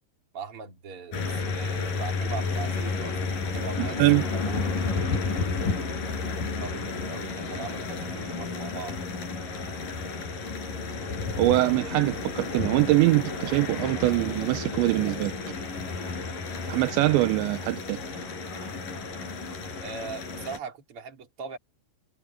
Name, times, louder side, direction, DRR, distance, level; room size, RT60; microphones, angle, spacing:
voice 1, 0.3-5.7 6.3-9.0 19.8-21.6, right 5 dB, 35° right, 3.6 m, -40 dB
sound 1, 1.1-20.6, left 4 dB, 45° left, 7.3 m, -32 dB
voice 2, 3.8-4.3 11.4-15.3 16.7-18.0, right 19 dB, 80° right, 3.0 m, -23 dB
omnidirectional pair, 5.3 m